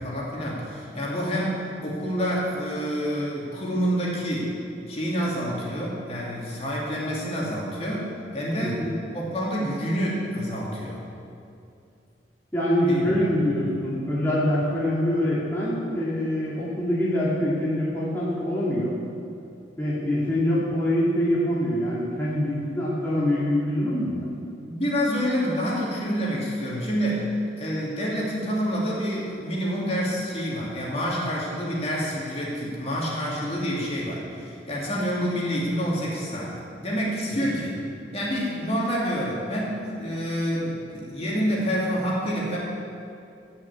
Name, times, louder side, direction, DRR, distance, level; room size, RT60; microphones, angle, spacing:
voice 1, 0.0-4.6 4.9-8.8 9.1-11.0 12.9-13.2 24.6-27.3 27.6-37.8 38.1-42.6, equal, 35° left, -5 dB, 3.0 m, -28 dB
voice 2, 12.5-19.0 19.8-24.3 37.4-37.5, left 1 dB, 10° left, -9 dB, 2.2 m, -24 dB
15.5 x 6.4 x 8.6 m, 2.6 s
head